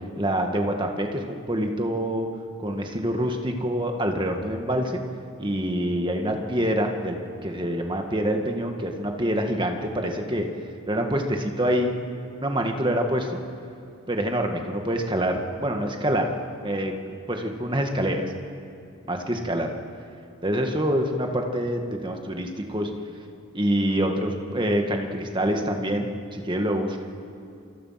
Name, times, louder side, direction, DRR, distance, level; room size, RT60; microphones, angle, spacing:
voice 1, 0.2-2.3 2.6-5.0 5.4-7.2 7.4-10.5 10.9-12.1 12.4-13.4 14.1-16.3 16.6-16.9 17.3-18.3 19.1-19.7 20.4-22.9 23.5-27.0, equal, 20° right, 3 dB, 1.9 m, -26 dB
28.0 x 25.0 x 5.9 m, 2.5 s
head